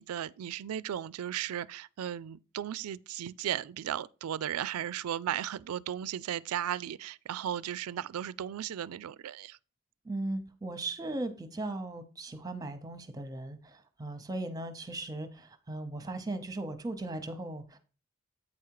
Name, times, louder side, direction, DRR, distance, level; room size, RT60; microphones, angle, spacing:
voice 1, 0.0-9.6, right 10 dB, 90° right, 0.3 m, -36 dB
voice 2, 10.0-17.8, right 2 dB, 15° right, 0.8 m, -38 dB
8.6 x 4.8 x 4.7 m
head